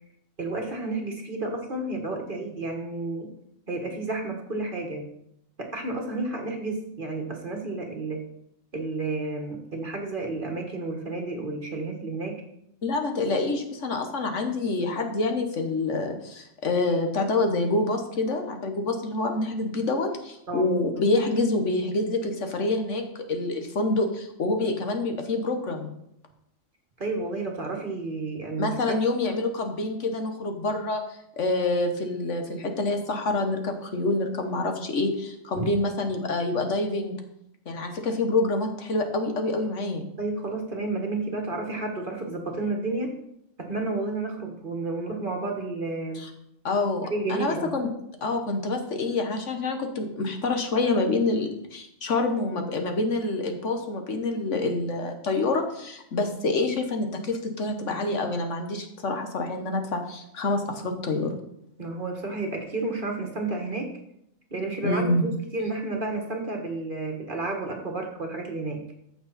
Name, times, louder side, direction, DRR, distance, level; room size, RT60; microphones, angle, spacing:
voice 1, 0.4-3.3 3.7-5.1 5.6-8.3 8.7-12.4 20.5-20.7 27.0-29.0 35.5-35.7 40.2-43.1 43.6-46.2 47.1-47.7 61.8-63.9 64.5-68.8, right 2 dB, 40° right, 3 dB, 1.6 m, -31 dB
voice 2, 12.8-23.0 23.3-25.9 28.6-37.2 37.7-40.0 46.1-46.3 46.6-47.9 48.2-61.3 64.8-65.2, left 2 dB, 60° left, 4 dB, 1.5 m, -27 dB
14.5 x 6.4 x 4.1 m, 0.77 s
omnidirectional pair, 1.4 m